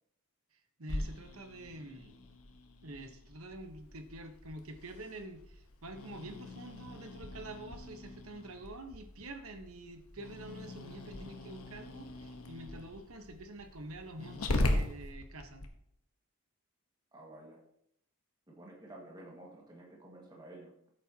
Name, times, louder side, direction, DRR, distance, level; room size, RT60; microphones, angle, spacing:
voice 1, 0.5-2.1 2.8-15.7, right 1 dB, 70° right, 6 dB, 1.2 m, -47 dB
Growling, 0.9-15.7, left 1 dB, 75° left, 1.2 m, -40 dB
voice 2, 17.1-17.6 18.5-20.7, right 1 dB, 20° right, -2 dB, 1.8 m, -51 dB
13.5 x 8.0 x 2.9 m, 0.73 s
head